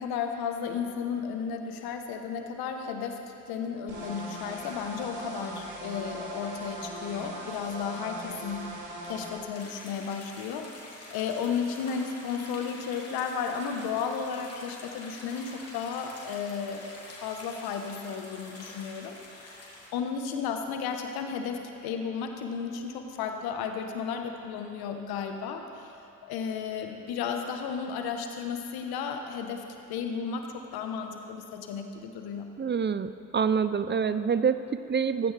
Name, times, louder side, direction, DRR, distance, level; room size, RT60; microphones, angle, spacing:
voice 1, 0.0-8.8 9.0-10.7 11.1-19.5 19.9-26.0 26.2-32.5, left 6 dB, 75° left, 4 dB, 1.2 m, -34 dB
sound 1, 3.9-9.4, right 1 dB, 50° right, 2.7 m, -40 dB
sound 2, 9.5-19.9, left 2 dB, 40° left, 3.4 m, -47 dB
voice 2, 32.6-35.3, right 6 dB, 30° right, 12 dB, 0.5 m, -26 dB
15.5 x 14.5 x 3.4 m, 2.9 s
hypercardioid pair, 45°, 38 cm